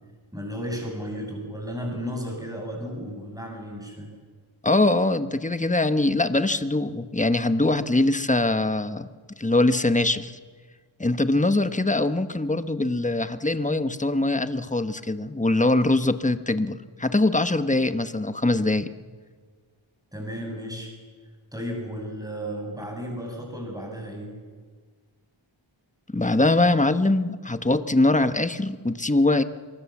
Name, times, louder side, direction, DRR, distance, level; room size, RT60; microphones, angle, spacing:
voice 1, 0.3-4.1 20.1-20.9 21.5-24.3, equal, 5° right, 1 dB, 7.3 m, -34 dB
voice 2, 4.6-9.1 9.4-10.4 11.0-18.9 26.1-29.4, left 2 dB, 15° left, 10 dB, 1.1 m, -22 dB
25.5 x 22.5 x 7.3 m, 1.5 s
wide cardioid pair, 65°, 49 cm